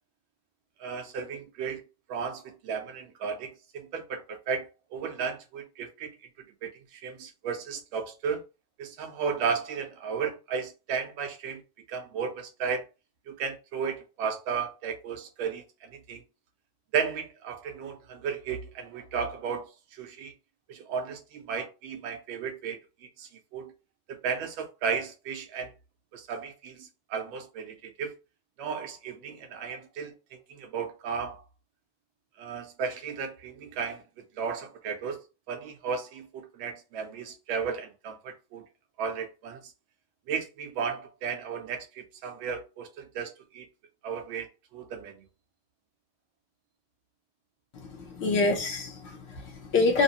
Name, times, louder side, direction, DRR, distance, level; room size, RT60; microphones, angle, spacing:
voice 1, 0.8-1.8 2.1-6.1 6.6-8.4 8.8-11.6 11.9-12.9 13.3-16.2 16.9-20.3 20.7-23.7 24.1-25.7 26.1-28.2 28.6-30.1 30.5-31.4 32.4-34.0 34.3-38.7 39.0-39.7 40.3-43.7 44.0-44.5 44.7-45.3, right 6 dB, 55° right, 0.7 m, -34 dB
voice 2, 47.8-50.0, left 3 dB, 35° left, 0.7 m, -26 dB
2.6 x 2.1 x 2.8 m
cardioid pair, 165°, 35 cm